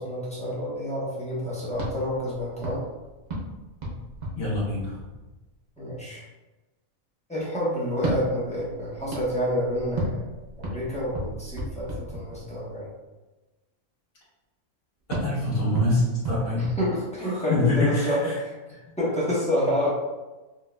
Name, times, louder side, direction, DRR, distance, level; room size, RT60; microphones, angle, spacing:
voice 1, 0.0-2.8 5.8-6.2 7.3-10.2 10.6-12.9 16.8-18.5 19.0-19.9, equal, 5° left, -8 dB, 0.7 m, -28 dB
sound 1, 1.7-5.5 7.9-12.8 15.1-17.5, right 1 dB, 45° right, 0.6 m, -34 dB
voice 2, 4.3-5.0 15.1-16.7 17.2-18.4 18.7-18.8, left 2 dB, 45° left, -8 dB, 1.4 m, -25 dB
4.4 x 2.2 x 2.2 m, 1.1 s
omnidirectional pair, 1.5 m